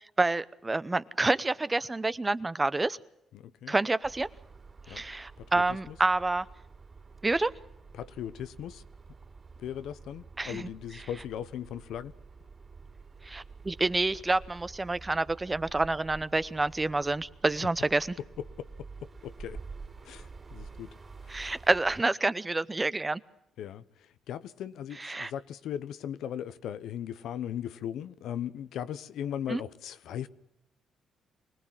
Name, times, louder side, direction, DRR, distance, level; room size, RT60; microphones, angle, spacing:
voice 1, 0.2-3.0 3.7-4.3 4.9-6.5 7.2-7.5 10.4-10.7 13.2-18.2 21.3-23.2 25.0-25.3 29.5-29.6, right 2 dB, 20° right, 0.8 m, -28 dB
voice 2, 3.3-3.7 4.9-5.0 5.4-6.0 7.9-8.8 9.6-12.1 18.4-18.7 19.0-19.6 20.0-20.9 21.2-21.5 23.6-30.3, left 10 dB, 80° left, 0.9 m, -38 dB
sound 1, 4.0-22.0, right 4 dB, 35° right, 4.0 m, -49 dB
24.5 x 18.5 x 7.5 m
cardioid pair, 90°, 0 cm